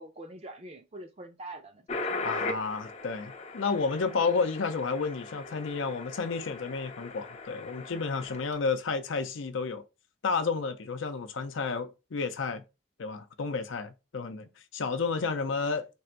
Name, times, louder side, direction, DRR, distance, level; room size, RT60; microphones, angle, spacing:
voice 1, 0.0-2.3, right 1 dB, 35° right, 0.5 m, -45 dB
sound 1, 1.9-8.6, left 3 dB, 35° left, 0.5 m, -39 dB
voice 2, 2.2-9.8 10.2-12.6 13.0-15.9, left 4 dB, 80° left, 0.5 m, -31 dB
3.4 x 2.5 x 4.4 m
head